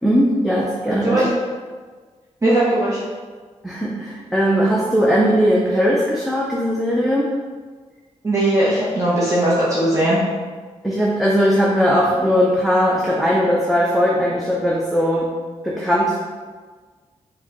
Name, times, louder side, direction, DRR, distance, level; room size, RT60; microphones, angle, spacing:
voice 1, 0.0-1.3 3.6-7.3 10.8-15.3 15.6-16.2, equal, ahead, -5 dB, 0.5 m, -19 dB
voice 2, 2.4-3.0 8.2-10.2, right 1 dB, 25° right, -8 dB, 0.9 m, -18 dB
4.4 x 2.2 x 3.7 m, 1.5 s
cardioid pair, 75°, 13 cm